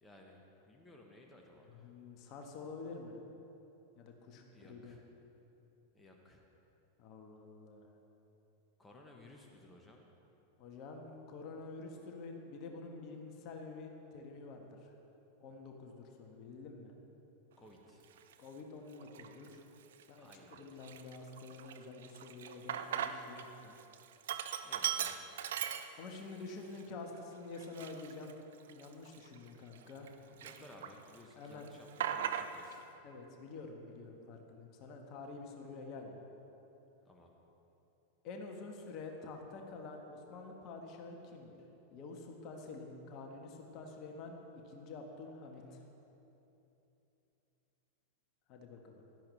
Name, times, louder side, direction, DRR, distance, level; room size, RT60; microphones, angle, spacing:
voice 1, 0.0-1.9 4.5-5.0 5.9-6.4 8.8-10.0 17.6-18.1 20.2-20.8 24.6-25.2 30.3-32.8 37.0-37.3 45.7-45.9, left 1 dB, 10° left, 0 dB, 1.2 m, -58 dB
voice 2, 1.7-3.2 4.0-5.0 7.0-7.9 10.6-14.9 15.4-16.9 18.4-19.6 20.1-23.8 26.0-28.3 28.7-30.1 31.3-31.7 33.0-36.2 38.2-41.6 41.9-44.4 44.6-45.8 48.5-49.0, left 3 dB, 40° left, 3 dB, 1.5 m, -48 dB
Sink (filling or washing), 18.2-18.3 19.0-19.5 19.9-20.0 20.3-23.5 23.8-26.3 26.8-26.9 27.5-30.1 30.4-31.2 31.4-32.8, right 9 dB, 60° right, 0.5 m, -39 dB
16.5 x 12.0 x 3.3 m, 3.0 s
figure-of-eight pair, 90°, 0 cm